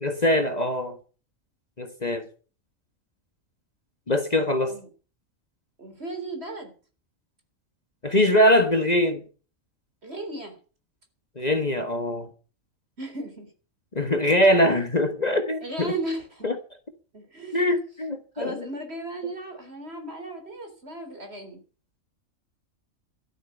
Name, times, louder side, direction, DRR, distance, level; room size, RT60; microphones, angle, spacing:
voice 1, 0.0-1.0 1.8-2.2 4.1-4.7 8.0-9.2 11.4-12.3 13.9-15.9 16.4-16.5 17.5-18.7, left 1 dB, 30° left, 7 dB, 1.5 m, -22 dB
voice 2, 5.8-6.7 10.0-10.6 13.0-13.5 15.6-16.5 17.1-17.8 18.3-21.6, right 2 dB, 50° right, 5 dB, 4.0 m, -35 dB
12.5 x 7.8 x 9.4 m, 0.38 s
omnidirectional pair, 1.4 m